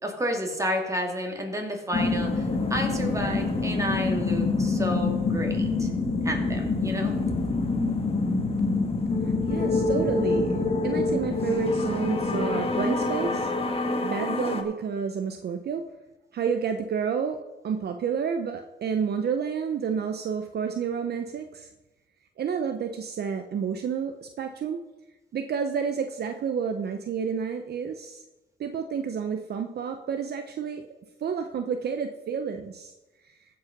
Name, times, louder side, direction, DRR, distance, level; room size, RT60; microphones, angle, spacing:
voice 1, 0.0-5.9 6.2-7.2, equal, 15° right, 2 dB, 2.5 m, -31 dB
sound 1, 1.9-14.6, left 3 dB, 30° left, 1.4 m, -26 dB
voice 2, 9.4-13.5 14.0-15.8 16.3-21.7 22.4-24.8 25.3-28.2 28.6-30.9 31.2-32.9, right 6 dB, 55° right, 7 dB, 0.7 m, -30 dB
15.5 x 5.6 x 5.2 m, 1.1 s
cardioid pair, 90°, 20 cm